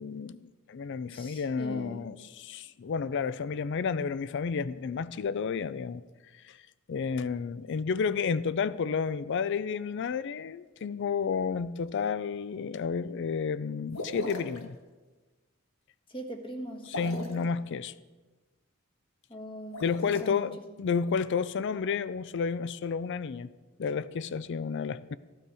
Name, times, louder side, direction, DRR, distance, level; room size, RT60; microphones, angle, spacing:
voice 1, 0.0-6.0 6.3-6.6 6.9-14.8 16.9-17.9 19.8-23.5 23.8-25.2, left 5 dB, 55° left, 0.4 m, -31 dB
voice 2, 1.1-2.1 16.1-17.5 19.3-20.6, right 1 dB, 25° left, 1.4 m, -41 dB
sound 1, 13.9-14.6 16.8-17.4 19.6-20.2, left 1 dB, 70° left, 1.5 m, -38 dB
14.5 x 12.0 x 4.8 m
head